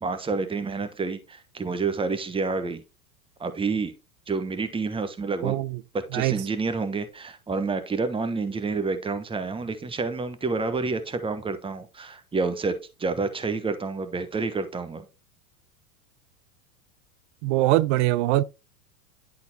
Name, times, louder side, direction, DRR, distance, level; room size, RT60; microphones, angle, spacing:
voice 1, 0.0-2.8 3.4-3.9 4.3-5.5 5.9-15.0, right 4 dB, 10° right, 1.3 m, -29 dB
voice 2, 5.4-5.8 6.1-6.3 17.4-18.4, right 16 dB, 50° right, 0.6 m, -22 dB
11.0 x 3.9 x 4.2 m
hypercardioid pair, 100°, 44 cm